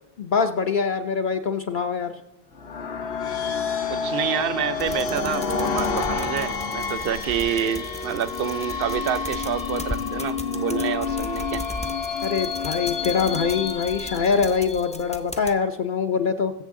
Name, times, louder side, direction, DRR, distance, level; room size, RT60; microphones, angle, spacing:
voice 1, 0.2-2.1 12.2-16.5, left 5 dB, 60° left, 0.7 m, -24 dB
sound 1, 2.5-15.1, left 5 dB, 80° left, 1.1 m, -29 dB
voice 2, 3.9-11.6, right 9 dB, 70° right, 0.7 m, -28 dB
sound 2, 4.8-15.5, left 1 dB, 10° left, 0.4 m, -38 dB
21.5 x 7.5 x 3.6 m
omnidirectional pair, 1.0 m